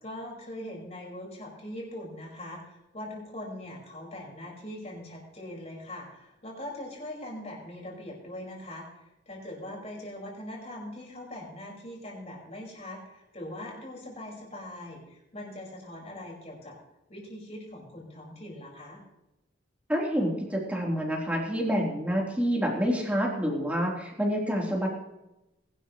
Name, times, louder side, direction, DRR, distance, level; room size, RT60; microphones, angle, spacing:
voice 1, 0.0-8.9 9.3-16.8 17.1-19.0, left 1 dB, 35° left, -3 dB, 5.5 m, -41 dB
voice 2, 19.9-24.9, equal, 10° right, -3 dB, 3.8 m, -28 dB
21.5 x 12.0 x 3.2 m, 0.93 s
head